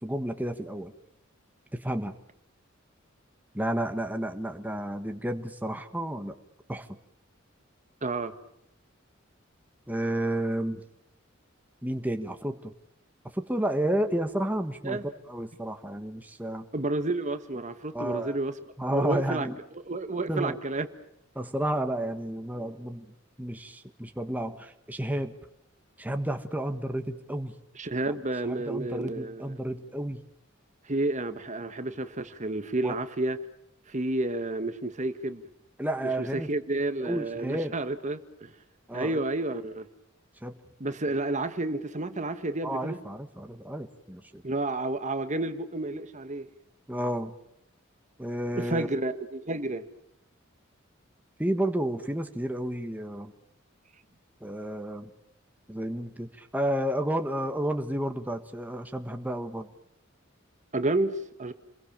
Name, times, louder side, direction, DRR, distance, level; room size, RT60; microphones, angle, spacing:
voice 1, 0.0-0.9 1.7-2.2 3.5-6.4 6.7-7.0 9.9-10.8 11.8-12.7 13.3-15.0 15.3-16.6 17.9-18.4 18.8-19.5 20.3-20.6 21.3-23.1 23.4-25.3 26.0-27.6 28.1-28.2 28.4-30.2 32.8-32.9 35.8-36.5 37.0-37.7 38.9-39.2 40.4-40.6 42.6-44.4 46.9-47.3 48.2-48.9 51.4-53.3 54.4-55.1 55.7-59.7, right 1 dB, 10° right, 1.5 m, -31 dB
voice 2, 8.0-8.3 14.8-15.0 16.7-18.5 18.9-19.5 19.7-20.9 27.7-29.6 30.8-33.4 33.9-35.4 36.2-38.5 38.9-39.9 40.8-43.0 44.4-46.5 48.5-49.8 60.7-61.5, right 2 dB, 35° right, 1.5 m, -30 dB
29.0 x 22.0 x 7.3 m
head